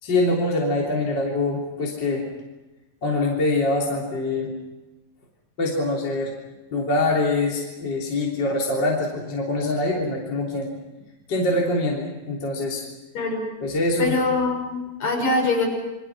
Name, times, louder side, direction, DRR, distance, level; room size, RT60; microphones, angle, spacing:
voice 1, 0.0-2.3 3.0-4.5 5.6-6.4 6.7-10.7 11.3-12.9 13.6-14.2, left 2 dB, 30° left, -3 dB, 3.8 m, -24 dB
voice 2, 13.1-13.5 14.0-15.7, left 3 dB, 50° left, 1 dB, 6.9 m, -23 dB
29.0 x 23.5 x 6.1 m, 1.1 s
omnidirectional pair, 4.0 m